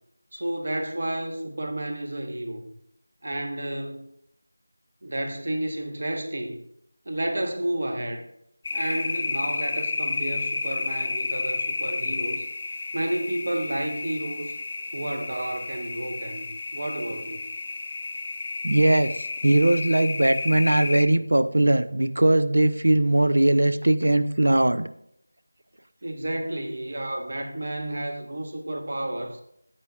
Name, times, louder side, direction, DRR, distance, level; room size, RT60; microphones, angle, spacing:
voice 1, 0.3-2.7 3.2-4.1 5.0-6.6 7.0-8.2 8.7-12.4 12.9-14.5 14.9-16.5 16.7-17.4 26.0-29.4, right 1 dB, 45° right, 5 dB, 1.2 m, -31 dB
sound 1, 8.6-21.0, left 3 dB, 20° left, 0.7 m, -31 dB
voice 2, 18.6-19.1 19.4-24.9, right 1 dB, 80° right, 12 dB, 0.7 m, -20 dB
13.5 x 8.3 x 2.5 m, 0.72 s
figure-of-eight pair, 175°, 0 cm